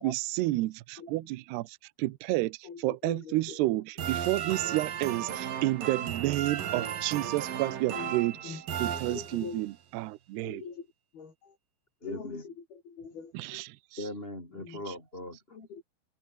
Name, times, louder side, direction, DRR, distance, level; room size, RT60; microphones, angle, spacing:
voice 1, 0.0-10.6 13.3-13.7, right 18 dB, 80° right, 2.4 m, -31 dB
voice 2, 2.6-4.1 7.9-8.2 8.4-9.6 10.4-10.9 11.1-11.6 12.0-13.6 14.5-14.8 15.5-15.8, left 5 dB, 50° left, 6.9 m, -43 dB
sound 1, 4.0-9.7, right 9 dB, 50° right, 3.2 m, -35 dB
voice 3, 12.0-12.4 14.0-15.6, left 1 dB, 10° left, 5.4 m, -40 dB
omnidirectional pair, 5.8 m